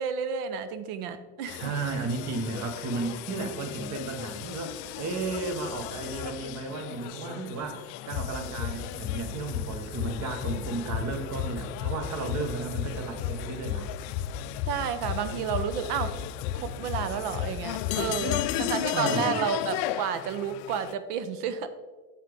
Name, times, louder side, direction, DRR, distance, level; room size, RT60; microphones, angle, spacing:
voice 1, 0.0-1.7 12.4-12.5 14.7-16.1 16.5-21.7, right 8 dB, 70° right, 11 dB, 0.9 m, -31 dB
sound 1, 1.5-20.9, left 11 dB, 55° left, 0.5 m, -34 dB
voice 2, 1.5-13.9 18.9-19.5, right 3 dB, 35° right, 6 dB, 1.3 m, -34 dB
7.6 x 7.2 x 3.5 m, 1.3 s
hypercardioid pair, 95°, 49 cm